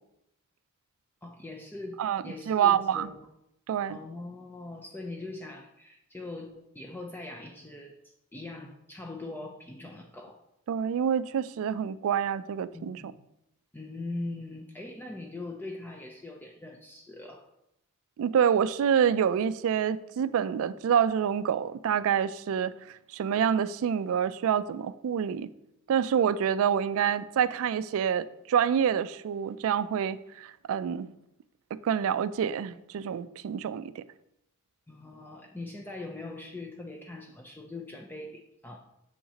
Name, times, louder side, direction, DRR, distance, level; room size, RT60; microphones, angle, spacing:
voice 1, 1.2-3.3 3.9-10.4 12.7-13.2 13.7-17.5 34.9-38.8, left 2 dB, 10° left, 0.4 m, -41 dB
voice 2, 2.0-3.1 3.7-4.0 10.7-13.0 18.2-22.7 23.1-25.5 25.9-31.1 31.7-34.0, right 8 dB, 65° right, 0.3 m, -27 dB
7.3 x 5.6 x 2.8 m
head